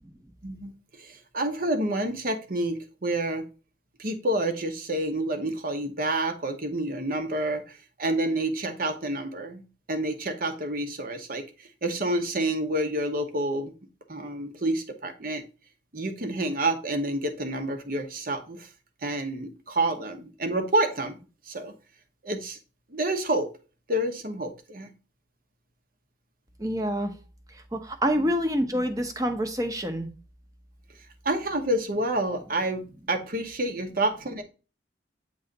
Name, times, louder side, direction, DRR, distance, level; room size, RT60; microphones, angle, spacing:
voice 1, 1.0-3.5 4.0-9.6 9.9-13.7 14.1-15.4 15.9-18.7 19.0-21.2 21.5-21.7 22.2-22.6 22.9-23.5 23.9-24.9 28.2-28.3 31.2-34.4, right 1 dB, 50° right, 7 dB, 0.9 m, -28 dB
voice 2, 26.6-27.1 27.5-30.1, equal, 20° right, 4 dB, 0.8 m, -27 dB
7.7 x 3.1 x 3.9 m, 0.34 s
head